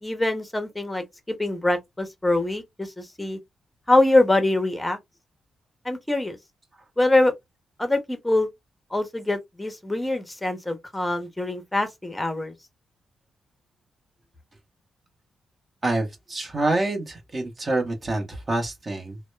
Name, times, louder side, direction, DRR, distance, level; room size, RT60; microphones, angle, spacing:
voice 1, 0.0-3.4 3.9-5.0 5.8-6.4 7.0-7.3 7.8-8.5 8.9-12.5, left 2 dB, 10° left, 0.7 m, -24 dB
voice 2, 15.8-19.2, right 2 dB, 35° right, 1.0 m, -27 dB
2.7 x 2.1 x 2.2 m
cardioid pair, 75°, 0 cm